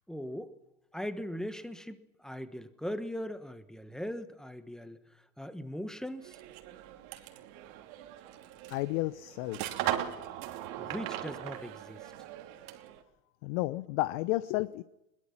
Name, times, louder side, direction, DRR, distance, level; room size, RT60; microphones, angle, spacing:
voice 1, 0.1-0.5 0.9-5.0 5.4-6.4 10.8-12.0, equal, ahead, 11 dB, 1.3 m, -39 dB
sound 1, 6.2-13.0, right 12 dB, 55° right, 2.9 m, -39 dB
voice 2, 8.7-9.9 13.4-14.8, left 18 dB, 50° left, 16 dB, 0.8 m, -32 dB
22.0 x 21.0 x 5.9 m, 0.92 s
hypercardioid pair, 120°, 45 cm